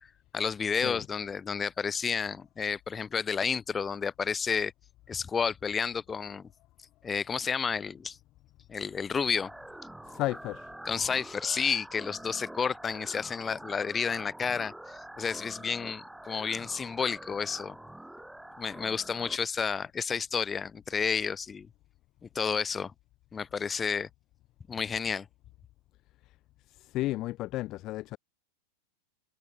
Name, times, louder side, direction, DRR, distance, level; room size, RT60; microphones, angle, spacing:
voice 1, 0.3-4.7 5.1-6.5 7.0-8.2 8.7-9.5 10.8-17.8 18.6-21.7 22.3-22.9 23.3-24.1 24.7-25.3, left 6 dB, 15° left, 4.2 m, -31 dB
sound 1, 9.4-19.4, right 1 dB, 5° right, 4.2 m, -46 dB
voice 2, 10.1-10.7 26.2-26.4 26.7-28.2, left 17 dB, 35° left, 1.5 m, -33 dB
figure-of-eight pair, 90°, 0 cm